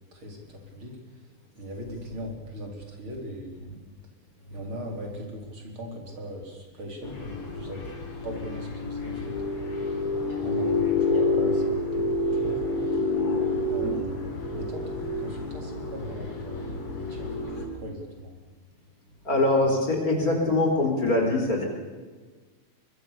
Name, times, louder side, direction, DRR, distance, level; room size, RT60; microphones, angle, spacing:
voice 1, 0.1-1.0 1.6-3.7 4.5-7.9 8.2-9.4 10.4-12.6 13.7-18.3, equal, 70° right, 2 dB, 5.0 m, -40 dB
sound 1, 7.0-17.6, left 2 dB, 85° left, 5.0 m, -28 dB
voice 2, 19.2-21.6, left 2 dB, 40° left, 2 dB, 5.2 m, -23 dB
24.0 x 22.5 x 7.0 m, 1.4 s
omnidirectional pair, 2.4 m